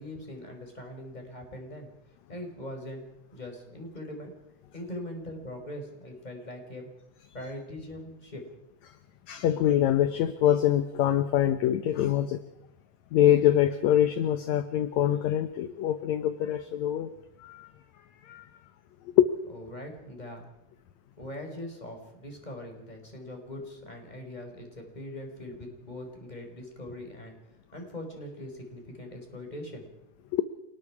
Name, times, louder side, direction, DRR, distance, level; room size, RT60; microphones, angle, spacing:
voice 1, 0.0-1.9 2.3-3.1 3.3-4.3 4.7-6.9 7.3-8.4 19.5-20.5 21.2-27.4 27.7-29.9, left 1 dB, 10° left, 3 dB, 4.6 m, -41 dB
voice 2, 9.3-12.4 13.1-17.1 17.4-17.7 18.3-18.4 19.2-19.3 30.3-30.4, left 11 dB, 70° left, 11 dB, 1.9 m, -24 dB
28.0 x 19.5 x 4.8 m, 0.87 s
omnidirectional pair, 3.9 m